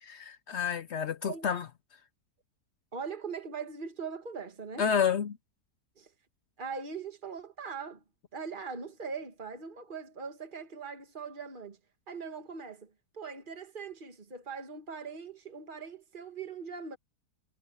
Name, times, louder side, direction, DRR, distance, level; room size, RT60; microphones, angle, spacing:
voice 1, 0.0-1.7 4.8-5.4, left 7 dB, 65° left, 0.6 m, -29 dB
voice 2, 2.9-4.9 6.0-6.1 6.6-8.0 8.3-11.8 12.1-17.0, right 5 dB, 30° right, 2.2 m, -41 dB
omnidirectional pair, 1.8 m